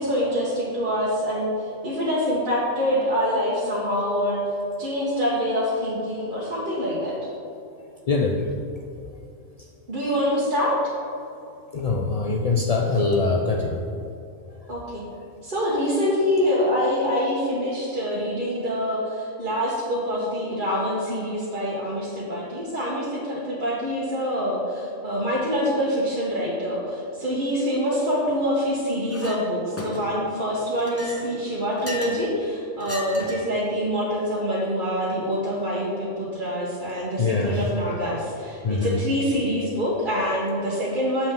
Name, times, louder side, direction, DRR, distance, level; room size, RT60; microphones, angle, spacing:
voice 1, 0.0-4.5 4.8-7.3 9.9-10.8 14.7-15.0 15.4-41.3, equal, 40° right, -7 dB, 1.4 m, -25 dB
voice 2, 8.1-8.5 11.7-13.8 37.2-37.6 38.6-39.0, left 3 dB, 60° left, 0 dB, 0.4 m, -23 dB
Chink clink, 29.1-29.4 29.8-30.3 30.8-32.3 32.8-33.5, left 1 dB, 15° left, 0.8 m, -35 dB
8.7 x 7.2 x 3.7 m, 2.7 s
omnidirectional pair, 1.4 m